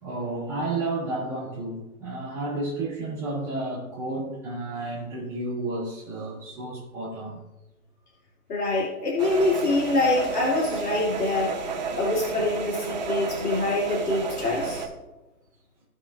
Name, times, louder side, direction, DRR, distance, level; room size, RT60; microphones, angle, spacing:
voice 1, 0.0-7.4, right 2 dB, 5° right, -9 dB, 1.7 m, -31 dB
voice 2, 8.5-11.5 11.9-14.8, left 2 dB, 80° left, -4 dB, 2.7 m, -25 dB
sound 1, 9.2-14.9, right 5 dB, 30° right, 1.1 m, -32 dB
16.5 x 5.4 x 2.5 m, 1.1 s
hypercardioid pair, 175°, 45 cm